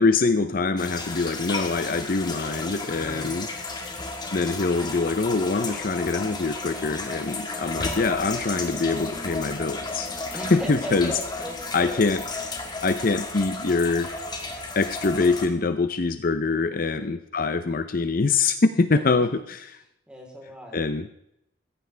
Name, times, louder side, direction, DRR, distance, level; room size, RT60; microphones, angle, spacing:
voice 1, 0.0-3.5 4.3-11.2 11.7-12.2 12.8-14.1 14.8-19.8 20.7-21.1, left 3 dB, 50° left, 10 dB, 0.6 m, -24 dB
sound 1, 0.8-15.5, left 3 dB, 20° left, 1.6 m, -33 dB
voice 2, 2.9-3.3 10.3-12.1 16.7-17.0 19.1-19.3 20.1-20.8, equal, 5° right, -1 dB, 3.7 m, -37 dB
16.0 x 14.5 x 3.4 m, 0.78 s
head